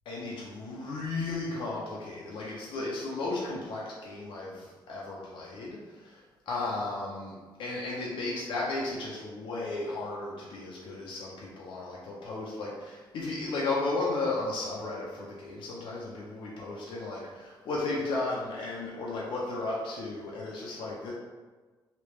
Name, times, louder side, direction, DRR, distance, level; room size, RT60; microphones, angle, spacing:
voice 1, 0.1-21.1, left 2 dB, 70° left, -4 dB, 0.6 m, -34 dB
3.1 x 2.8 x 3.3 m, 1.4 s
cardioid pair, 165°, 9 cm